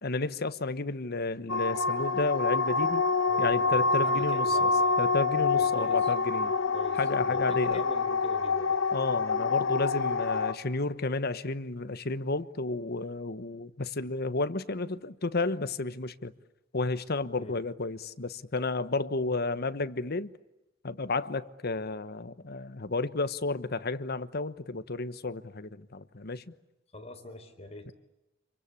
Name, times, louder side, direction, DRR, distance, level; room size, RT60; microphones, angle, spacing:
voice 1, 0.0-3.0 3.4-4.7 5.0-6.5 7.0-7.8 8.9-16.3 16.7-20.3 20.8-26.4 27.9-28.0, left 3 dB, 55° left, 1.2 m, -32 dB
sound 1, 1.5-10.5, left 4 dB, 75° left, 1.6 m, -27 dB
voice 2, 3.3-5.0 5.6-6.1 6.7-8.8 17.4-17.6 26.9-27.9, left 2 dB, 35° left, 4.2 m, -45 dB
28.0 x 24.5 x 8.4 m
head